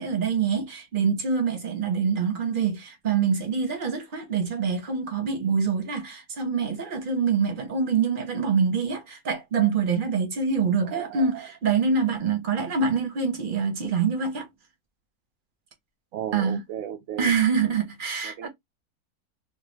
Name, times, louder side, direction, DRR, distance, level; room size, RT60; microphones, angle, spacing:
voice 1, 0.0-14.5 16.3-16.6 17.2-18.5, right 5 dB, 40° right, 0.8 m, -25 dB
voice 2, 10.8-11.5 16.1-17.3 18.2-18.5, right 10 dB, 70° right, 0.7 m, -35 dB
3.1 x 2.3 x 3.2 m
omnidirectional pair, 1.9 m